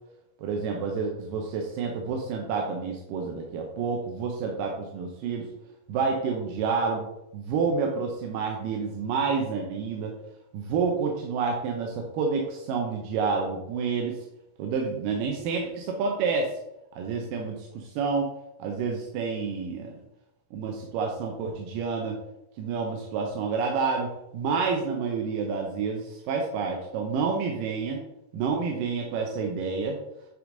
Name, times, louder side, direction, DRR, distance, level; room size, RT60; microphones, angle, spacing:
voice 1, 0.4-5.5 5.9-7.1 7.3-10.1 10.5-14.2 14.6-16.6 17.0-18.3 18.6-20.0 20.5-22.2 22.6-28.0 28.3-30.0, right 5 dB, 85° right, 1 dB, 2.5 m, -29 dB
8.5 x 4.7 x 3.9 m, 0.86 s
omnidirectional pair, 3.9 m